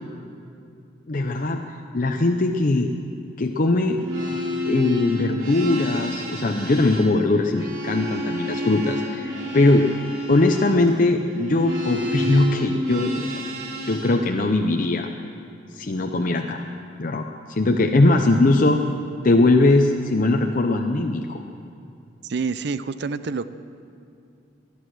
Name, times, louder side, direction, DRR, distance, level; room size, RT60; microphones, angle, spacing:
voice 1, 1.1-1.6 1.9-2.9 3.4-4.0 4.6-9.9 10.3-13.3 13.8-15.1 15.7-16.7 17.0-18.8 19.2-21.4, left 2 dB, 45° left, 3 dB, 0.6 m, -20 dB
sound 1, 3.9-14.2, left 1 dB, 80° right, 3.5 m, -30 dB
voice 2, 22.2-23.5, right 4 dB, 60° right, 14 dB, 0.5 m, -27 dB
19.0 x 11.5 x 6.3 m, 2.5 s
head